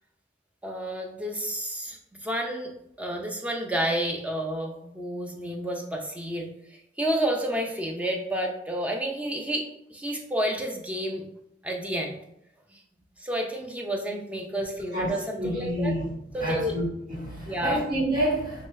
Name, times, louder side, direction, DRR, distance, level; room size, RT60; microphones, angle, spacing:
voice 1, 0.6-2.7 3.0-11.2 11.6-12.2 12.7-12.8 13.2-15.9 16.3-16.8 17.5-17.8, right 1 dB, 10° right, 2 dB, 0.6 m, -30 dB
voice 2, 14.9-16.1 16.4-18.6, equal, 50° right, -11 dB, 1.6 m, -29 dB
5.9 x 3.1 x 2.6 m, 0.77 s
head